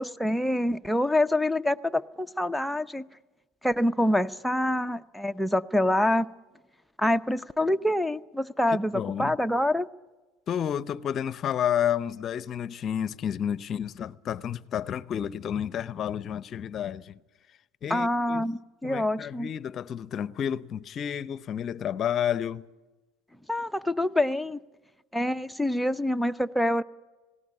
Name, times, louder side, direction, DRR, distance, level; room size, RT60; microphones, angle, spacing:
voice 1, 0.0-3.1 3.6-6.3 7.0-9.9 17.9-19.5 23.5-24.6 25.1-26.8, left 1 dB, ahead, 0.6 m, -26 dB
voice 2, 8.9-9.4 10.5-17.2 17.8-18.5 18.8-22.7, left 9 dB, 40° left, 0.7 m, -30 dB
18.5 x 17.5 x 9.8 m
supercardioid pair, 110°, 0 cm